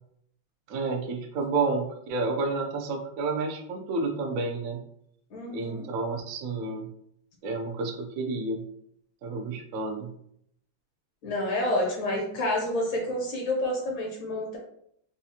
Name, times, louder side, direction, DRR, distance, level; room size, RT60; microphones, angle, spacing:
voice 1, 0.7-4.8 5.5-6.9 7.4-8.6 9.2-10.1, right 3 dB, 90° right, 2 dB, 0.7 m, -30 dB
voice 2, 5.3-5.9 11.2-14.6, left 1 dB, 70° left, -1 dB, 1.6 m, -29 dB
4.3 x 2.4 x 2.8 m, 0.70 s
omnidirectional pair, 2.2 m